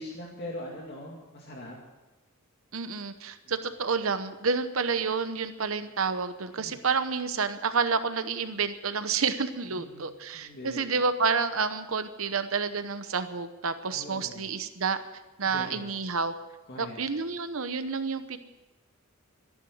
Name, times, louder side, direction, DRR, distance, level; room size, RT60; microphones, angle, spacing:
voice 1, 0.0-1.8 3.4-3.5 6.5-6.8 9.7-10.1 10.3-10.9 13.9-14.5 15.4-15.9 16.7-17.0, left 1 dB, 50° left, -1 dB, 2.4 m, -42 dB
voice 2, 2.7-15.0 15.4-16.3 16.8-18.4, right 5 dB, 70° right, 10 dB, 0.9 m, -29 dB
13.5 x 11.0 x 9.3 m, 1.1 s
head